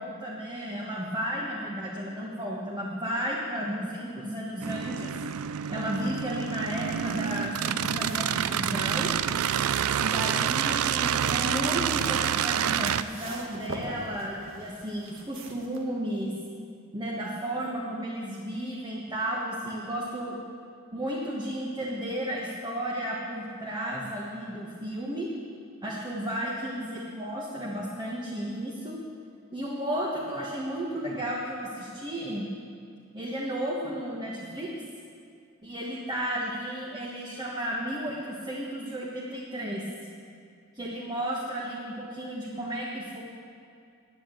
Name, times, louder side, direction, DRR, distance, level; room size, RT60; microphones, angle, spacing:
voice 1, 0.0-5.1 5.7-9.1 10.0-16.3 16.9-20.4 20.9-25.3 25.8-29.0 29.5-32.5 33.1-34.7 35.6-39.8 40.7-43.2, right 1 dB, 20° right, -5 dB, 1.5 m, -33 dB
sound 1, 4.6-13.0, right 9 dB, 90° right, 0.4 m, -28 dB
sound 2, 6.9-15.8, right 2 dB, 65° right, 1.4 m, -45 dB
10.5 x 9.8 x 7.8 m, 2.4 s
head